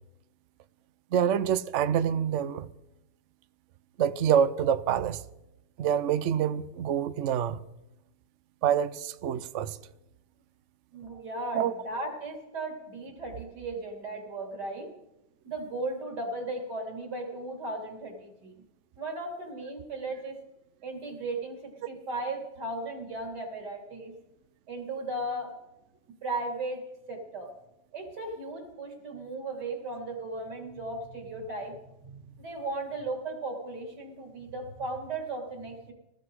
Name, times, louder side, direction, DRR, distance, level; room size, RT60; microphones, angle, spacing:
voice 1, 1.1-2.7 4.0-5.2 5.8-7.6 8.6-9.8 11.5-11.7 21.9-22.0, right 9 dB, 75° right, 0.6 m, -26 dB
voice 2, 10.9-14.9 15.4-18.5 19.0-20.4 20.8-24.1 24.7-25.6 26.2-27.5 27.9-35.9, right 2 dB, 55° right, 3.7 m, -36 dB
20.5 x 14.5 x 4.8 m
omnidirectional pair, 2.1 m